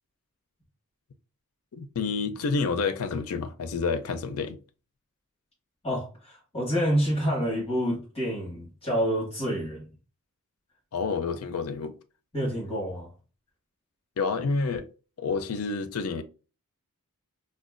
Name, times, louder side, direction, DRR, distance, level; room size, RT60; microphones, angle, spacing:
voice 1, 1.7-4.6 10.9-11.9 14.2-14.9 15.2-16.2, left 4 dB, 70° left, 0.5 m, -29 dB
voice 2, 5.8-9.9 12.3-13.1, equal, 25° left, 1.7 m, -28 dB
5.0 x 2.2 x 2.4 m
head